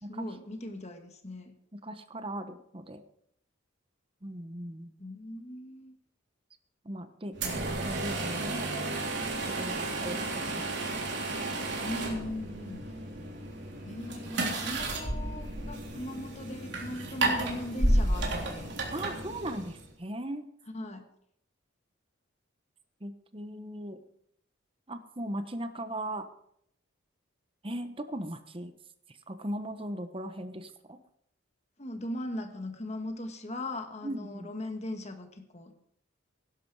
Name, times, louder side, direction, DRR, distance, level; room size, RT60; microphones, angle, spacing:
voice 1, 0.1-1.5 5.0-6.0 11.8-12.8 13.8-18.8 20.7-21.1 31.8-35.7, left 1 dB, 35° left, 6 dB, 1.4 m, -39 dB
voice 2, 1.8-3.0 4.2-4.9 6.8-8.7 9.6-10.7 13.2-13.3 18.9-20.5 23.0-24.0 24.9-26.3 27.6-28.7 29.1-31.0 34.0-34.5, right 1 dB, 25° right, 10 dB, 1.0 m, -38 dB
sound 1, 7.3-19.9, right 2 dB, 60° right, 3.5 m, -32 dB
17.5 x 11.0 x 4.8 m, 0.72 s
head